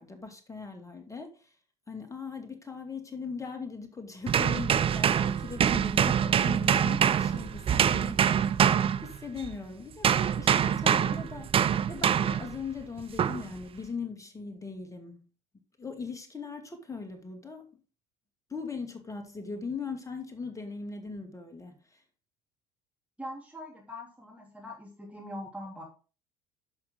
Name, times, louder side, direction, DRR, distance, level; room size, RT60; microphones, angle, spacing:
voice 1, 0.0-1.3 1.9-8.4 9.0-15.2 15.8-17.7 18.5-21.8, left 4 dB, 15° left, 2.5 m, -39 dB
sound 1, 4.3-9.6 10.0-12.6 13.2-13.5, right 8 dB, 30° right, 0.5 m, -25 dB
voice 2, 23.2-25.8, left 1 dB, 5° right, 3.2 m, -42 dB
11.0 x 5.9 x 3.8 m
hypercardioid pair, 75°, 20 cm